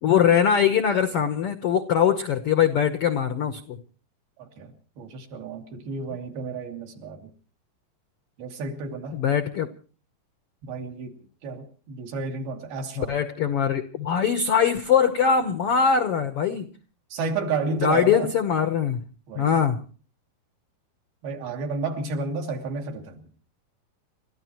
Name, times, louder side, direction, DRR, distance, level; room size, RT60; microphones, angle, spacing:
voice 1, 0.0-3.8 9.1-9.7 13.0-16.7 17.8-19.0 19.3-19.8, left 7 dB, 80° left, 1.3 m, -22 dB
voice 2, 4.4-7.2 8.4-9.2 10.6-11.1 11.4-13.1 17.1-18.3 19.3-19.6 21.2-23.2, right 4 dB, 85° right, 4.3 m, -31 dB
30.0 x 14.0 x 3.0 m
omnidirectional pair, 4.2 m